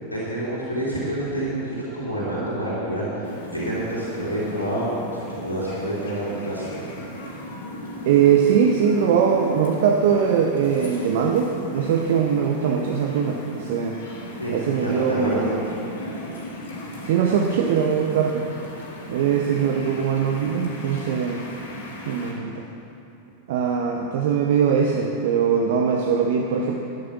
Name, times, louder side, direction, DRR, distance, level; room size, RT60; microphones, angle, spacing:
voice 1, 0.1-6.8 14.4-15.5, right 1 dB, 90° left, -9 dB, 3.1 m, -28 dB
sound 1, 3.2-22.3, left 1 dB, 60° left, 2.8 m, -37 dB
voice 2, 8.1-14.0 14.5-15.6 16.3-16.4 17.0-18.5 19.1-21.4 22.1-22.6 23.5-26.8, right 7 dB, 55° right, 2 dB, 0.9 m, -21 dB
12.0 x 11.0 x 6.1 m, 2.9 s
figure-of-eight pair, 90°, 0 cm